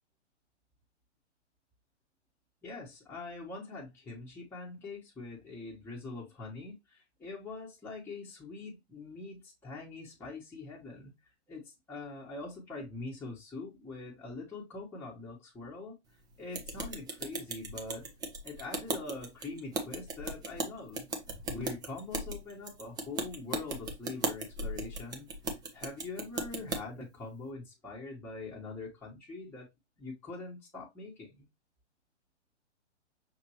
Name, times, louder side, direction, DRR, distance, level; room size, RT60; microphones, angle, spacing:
voice 1, 2.6-11.1 11.5-16.0 16.4-18.1 18.4-21.1 21.5-25.3 25.7-29.7 30.0-31.5, left 3 dB, 5° left, 1.2 m, -43 dB
sound 1, 16.5-26.8, right 2 dB, 10° right, 0.6 m, -37 dB
6.0 x 2.8 x 3.0 m
hypercardioid pair, 125°, 36 cm